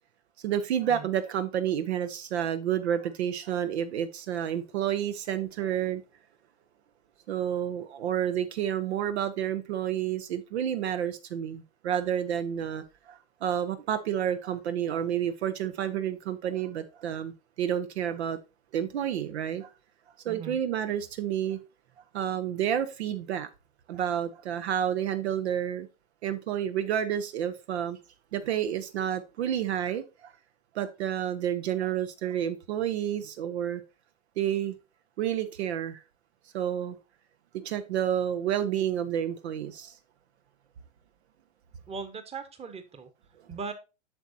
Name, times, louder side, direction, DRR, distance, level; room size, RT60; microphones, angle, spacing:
voice 1, 0.4-6.0 7.3-18.4 18.7-19.7 20.2-21.6 22.1-23.5 23.9-25.9 26.2-28.0 28.3-30.3 30.7-33.8 34.4-34.8 35.2-36.0 36.5-37.0 37.5-39.9, right 10 dB, 60° right, 0.9 m, -30 dB
voice 2, 20.3-20.6 41.9-43.1 43.5-43.7, right 5 dB, 15° right, 1.2 m, -39 dB
8.0 x 6.2 x 2.7 m
hypercardioid pair, 100°, 36 cm